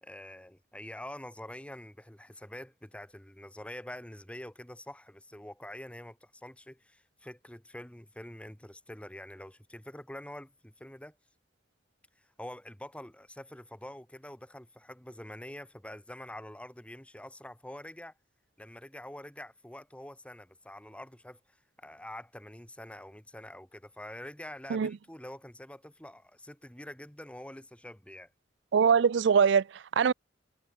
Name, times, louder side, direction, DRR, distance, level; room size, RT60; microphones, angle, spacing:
voice 1, 0.0-11.2 12.2-18.1 18.6-28.3, left 1 dB, 5° left, 1.8 m, -46 dB
voice 2, 28.7-30.1, right 6 dB, 65° right, 0.4 m, -23 dB
head